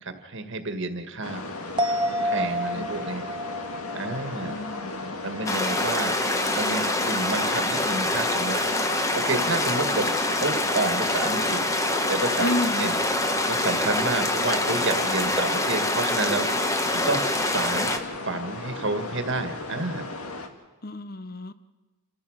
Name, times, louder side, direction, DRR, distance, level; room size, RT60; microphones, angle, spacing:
voice 1, 0.0-1.4 2.2-3.2 3.9-4.6 5.2-6.2 6.5-8.6 9.1-11.6 12.1-12.5 12.8-12.9 13.5-16.5 16.9-20.1, right 3 dB, 55° right, 7 dB, 1.8 m, -30 dB
sound 1, 1.2-20.5, left 2 dB, 80° left, 2.0 m, -36 dB
sound 2, 1.8-5.5 5.8-5.9, equal, 20° right, 0.8 m, -30 dB
voice 2, 4.4-5.2 12.4-12.9 20.8-21.5, left 1 dB, 40° left, 13 dB, 0.9 m, -31 dB
sound 3, 5.5-18.0, left 1 dB, 15° left, 1.1 m, -25 dB
29.0 x 14.5 x 6.5 m, 1.2 s
head